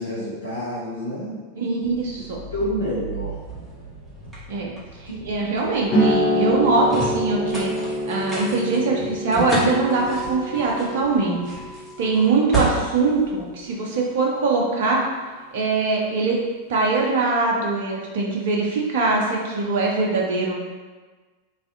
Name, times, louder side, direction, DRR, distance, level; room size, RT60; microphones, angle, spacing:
voice 1, 0.0-1.9 2.5-3.4 5.1-5.2, equal, 80° left, -8 dB, 0.5 m, -29 dB
voice 2, 1.6-2.4 4.5-4.7 5.2-7.7 8.1-11.4 12.0-15.0 15.5-16.4 16.7-20.5, right 3 dB, 55° right, -1 dB, 0.5 m, -22 dB
sound 1, 1.8-14.2, right 2 dB, 10° right, 0.8 m, -33 dB
sound 2, 5.9-13.1, equal, 35° left, 0.7 m, -26 dB
2.5 x 2.4 x 2.5 m, 1.3 s
figure-of-eight pair, 90°, 0 cm